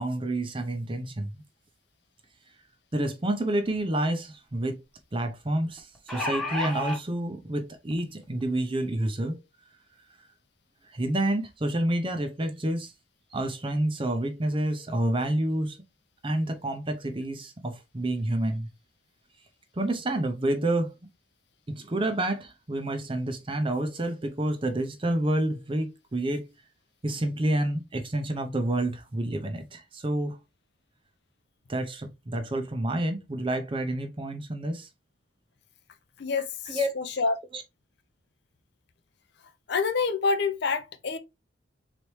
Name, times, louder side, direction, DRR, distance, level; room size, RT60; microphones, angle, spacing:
voice 1, 0.0-1.4 2.9-4.8 5.1-9.4 10.9-12.9 13.3-15.8 16.2-18.7 19.8-21.0 21.7-26.5 27.0-30.4 31.7-34.9 36.4-36.9 37.5-37.6, right 1 dB, 25° right, 0.6 m, -29 dB
sound 1, 3.7-3.8 4.1-4.2 5.8-7.0 7.9-8.0 8.4-8.5, left 1 dB, ahead, 1.0 m, -31 dB
voice 2, 36.2-37.3 39.7-41.2, left 4 dB, 55° left, 0.6 m, -27 dB
4.0 x 3.2 x 3.1 m
head